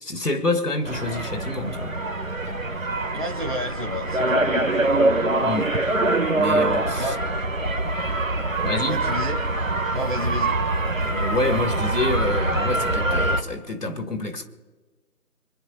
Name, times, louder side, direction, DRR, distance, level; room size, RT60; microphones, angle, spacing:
voice 1, 0.0-2.0 5.4-5.8 6.3-7.1 8.6-9.1 11.1-14.5, left 2 dB, 85° left, 1.9 m, -27 dB
sound 1, 0.9-13.4, right 2 dB, 60° right, 1.5 m, -24 dB
voice 2, 3.1-4.4 7.0-7.2 8.9-9.4 9.9-10.6, equal, 35° right, 1.0 m, -30 dB
26.5 x 10.0 x 4.3 m
figure-of-eight pair, 175°, 45 cm